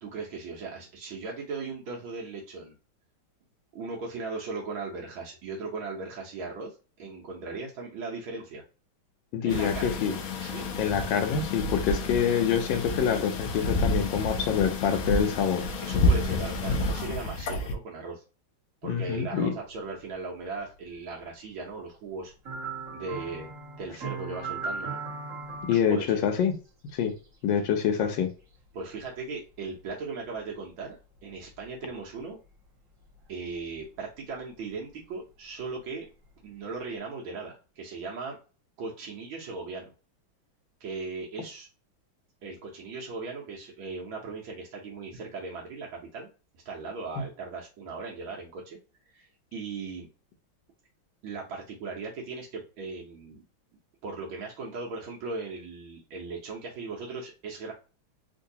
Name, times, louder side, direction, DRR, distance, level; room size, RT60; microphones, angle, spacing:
voice 1, 0.0-2.7 3.7-8.6 9.4-10.1 10.4-10.7 15.8-18.2 18.8-22.3 22.9-23.5 23.8-25.0 25.7-26.2 28.7-31.0 31.2-32.4 33.3-36.1 36.4-38.4 38.8-39.9 40.8-41.7 42.4-46.3 46.6-48.8 49.1-50.1 51.2-53.4 54.0-57.7, right 4 dB, 80° right, 1.6 m, -38 dB
voice 2, 9.3-10.1 10.8-15.7 18.8-19.5 25.6-26.5 26.9-27.1 27.4-28.3, left 7 dB, 70° left, 1.3 m, -26 dB
sound 1, 9.5-17.7, left 2 dB, 90° left, 0.7 m, -29 dB
sound 2, 22.5-25.7 28.6-28.7, right 4 dB, 45° right, 1.5 m, -36 dB
3.8 x 2.6 x 2.7 m
omnidirectional pair, 2.2 m